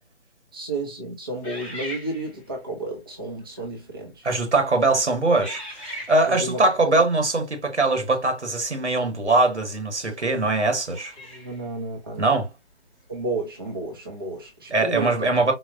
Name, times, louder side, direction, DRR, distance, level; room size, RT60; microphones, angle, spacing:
voice 1, 0.5-4.3 6.3-7.0 11.2-12.4 13.1-15.3, right 2 dB, 20° right, 0.4 m, -32 dB
sound 1, 1.4-2.6 3.4-3.6 4.3-4.6 5.4-6.5 9.2-9.3 10.8-11.7, left 1 dB, 10° left, 0.9 m, -39 dB
voice 2, 4.2-11.1 12.2-12.5 14.7-15.5, right 2 dB, 80° right, 1.1 m, -22 dB
4.0 x 2.1 x 2.4 m
figure-of-eight pair, 145°, 34 cm